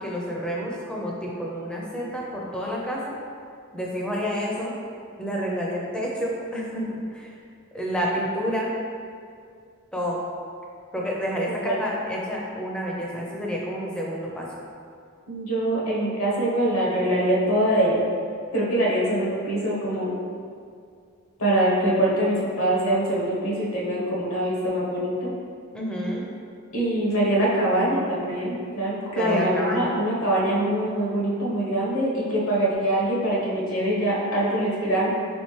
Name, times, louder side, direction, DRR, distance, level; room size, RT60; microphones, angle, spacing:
voice 1, 0.0-3.1 3.7-4.7 5.2-7.3 7.7-8.7 9.9-10.2 10.9-14.5 25.7-26.2 29.2-29.9, equal, 5° left, -4 dB, 0.6 m, -29 dB
voice 2, 11.5-11.8 15.3-18.0 18.5-20.1 21.4-25.3 26.7-35.1, right 1 dB, 65° left, -5 dB, 1.1 m, -23 dB
4.2 x 3.8 x 3.2 m, 2.3 s
head